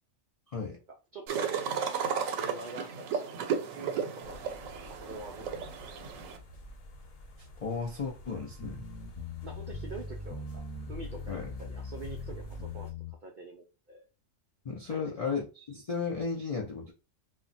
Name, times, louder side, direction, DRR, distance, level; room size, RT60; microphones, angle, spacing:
voice 1, 1.1-2.1 2.4-4.5 4.9-5.5 5.8-5.9 9.4-10.6 10.9-12.9 13.2-14.0 14.9-15.3, right 3 dB, 70° right, 0.4 m, -45 dB
sound 1, 1.3-6.4, right 7 dB, 85° right, 1.0 m, -34 dB
sound 2, 4.2-12.9, equal, 85° left, 1.1 m, -50 dB
voice 2, 7.6-8.9 11.3-11.5 14.6-16.9, left 5 dB, 60° left, 0.3 m, -34 dB
sound 3, 8.6-13.1, left 3 dB, 30° left, 0.6 m, -40 dB
2.3 x 2.1 x 3.9 m
omnidirectional pair, 1.3 m